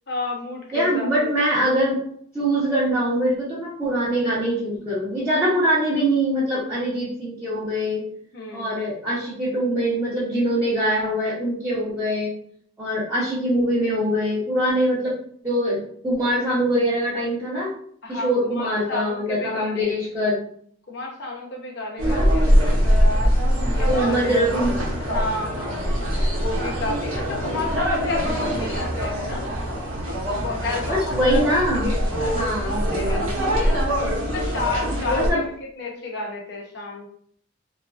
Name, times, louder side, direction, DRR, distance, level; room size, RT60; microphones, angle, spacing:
voice 1, 0.1-1.3 8.3-8.8 18.0-19.9 20.9-23.2 23.7-24.3 25.0-25.9 26.4-29.5 30.1-34.1 34.3-35.5 35.8-37.1, left 2 dB, 55° left, 0 dB, 0.6 m, -31 dB
voice 2, 0.7-2.0 2.3-8.0 8.5-12.3 12.8-15.2 15.4-17.7 18.1-20.4 21.9-22.3 23.9-24.8 27.4-27.6 30.9-31.9 32.3-33.0 35.1-35.4, equal, 10° right, -10 dB, 0.7 m, -23 dB
sound 1, 22.0-35.3, equal, 90° right, 0.9 m, -23 dB
2.8 x 2.4 x 2.3 m, 0.62 s
head